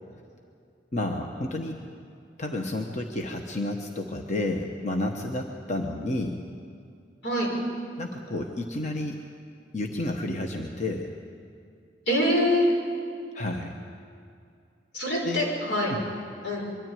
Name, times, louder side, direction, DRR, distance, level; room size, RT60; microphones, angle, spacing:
voice 1, 0.9-1.8 2.4-6.4 8.0-9.2 9.7-11.1 13.3-13.8 15.2-15.5 15.9-16.0, left 1 dB, 40° left, 2 dB, 1.1 m, -31 dB
voice 2, 12.1-12.7 14.9-15.9 16.4-16.6, equal, 85° left, -3 dB, 5.9 m, -24 dB
23.0 x 13.5 x 9.2 m, 2.4 s
head